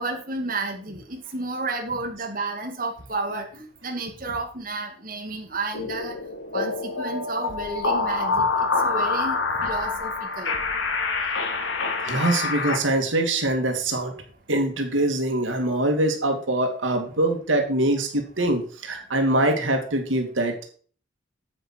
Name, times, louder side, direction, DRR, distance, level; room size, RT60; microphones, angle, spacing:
voice 1, 0.0-6.1 6.5-10.5, right 3 dB, 45° right, 1 dB, 2.6 m, -31 dB
sound 1, 5.7-12.8, left 3 dB, 85° left, 2.5 m, -26 dB
voice 2, 12.0-14.1 14.5-20.6, right 1 dB, 90° right, 3 dB, 2.5 m, -23 dB
9.9 x 8.3 x 4.6 m, 0.43 s
head